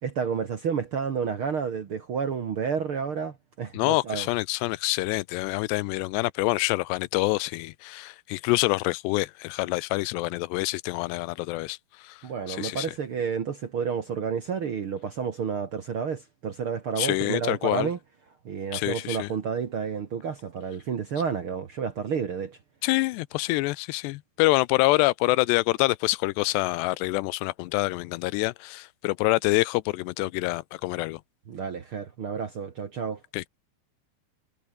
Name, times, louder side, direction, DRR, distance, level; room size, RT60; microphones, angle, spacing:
voice 1, 0.0-4.3 12.2-18.0 18.4-22.6 31.5-33.2, right 6 dB, 85° right, 1.1 m, -30 dB
voice 2, 3.7-12.9 17.0-17.9 18.7-19.3 22.8-31.2 33.3-33.5, left 21 dB, 80° left, 2.6 m, -26 dB
omnidirectional pair, 5.3 m